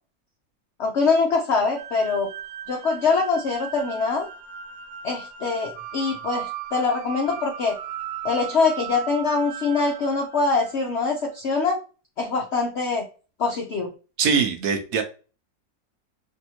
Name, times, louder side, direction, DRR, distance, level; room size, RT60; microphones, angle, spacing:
voice 1, 0.8-2.3 2.7-4.3 5.0-7.8 8.2-11.8 12.2-13.1 13.4-13.9, left 4 dB, 75° left, 1 dB, 0.6 m, -23 dB
sound 1, 1.8-10.9, right 9 dB, 90° right, 1.4 m, -37 dB
voice 2, 14.2-15.0, right 6 dB, 70° right, 6 dB, 1.0 m, -22 dB
3.4 x 2.6 x 2.8 m, 0.34 s
omnidirectional pair, 1.9 m